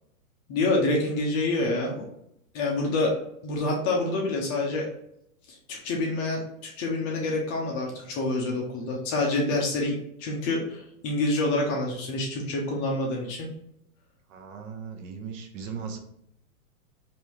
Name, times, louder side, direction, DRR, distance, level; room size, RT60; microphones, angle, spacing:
voice 1, 0.5-2.1 2.5-3.1 3.4-4.9 5.7-13.5, left 2 dB, 25° left, -1 dB, 0.5 m, -27 dB
voice 2, 14.3-16.0, right 6 dB, 60° right, 4 dB, 0.8 m, -38 dB
3.3 x 2.6 x 2.9 m, 0.75 s
hypercardioid pair, 135°, 43 cm